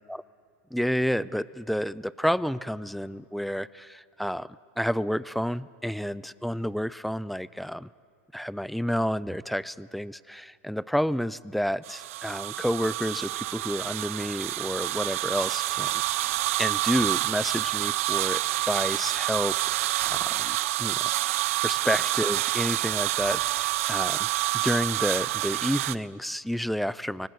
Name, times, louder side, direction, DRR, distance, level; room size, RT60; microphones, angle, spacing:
voice 1, 0.7-4.5 4.8-7.9 8.3-16.3 16.6-21.1 21.6-24.3 24.5-27.3, equal, ahead, 19 dB, 0.4 m, -30 dB
sound 1, 11.8-26.0, right 16 dB, 75° right, 0.5 m, -28 dB
23.0 x 19.0 x 8.1 m, 2.5 s
supercardioid pair, 110°, 7 cm